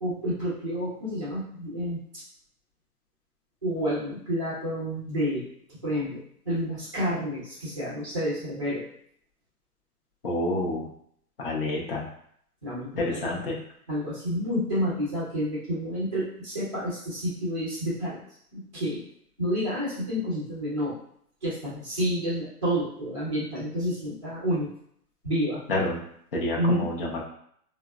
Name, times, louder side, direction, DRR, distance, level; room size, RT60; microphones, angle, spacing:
voice 1, 0.0-2.0 3.6-5.4 5.8-8.9 12.6-13.2 13.9-18.2 18.5-19.0 19.4-21.0 21.4-24.7 25.2-25.6 26.6-26.9, equal, 20° right, -9 dB, 0.5 m, -29 dB
voice 2, 10.2-10.9 11.4-12.1 13.0-13.6 25.7-26.0 26.3-27.2, left 2 dB, 40° left, -3 dB, 0.5 m, -28 dB
4.3 x 2.0 x 2.3 m, 0.67 s
hypercardioid pair, 175°, 47 cm